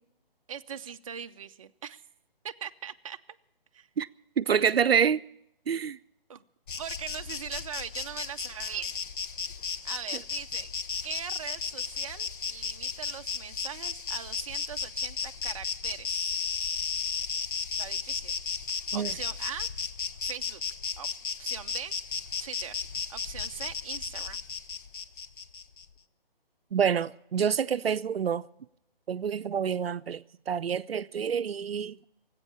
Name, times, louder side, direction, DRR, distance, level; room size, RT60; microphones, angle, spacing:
voice 1, 0.5-2.0 2.4-3.2 3.7-3.9 6.3-6.4 6.8-8.9 9.8-10.7 11.0-16.3 17.8-18.4 18.9-19.7 20.2-20.6 21.0-21.1 21.4-22.0 22.4-22.8 23.1-24.4, right 8 dB, 35° right, 0.5 m, -41 dB
voice 2, 4.4-5.2 5.7-6.0 10.1-10.2 18.9-19.2 26.7-28.5 29.1-32.0, right 7 dB, 85° right, 0.5 m, -27 dB
Insect, 6.7-25.8, left 6 dB, 60° left, 0.8 m, -34 dB
18.5 x 8.2 x 8.5 m
figure-of-eight pair, 145°, 29 cm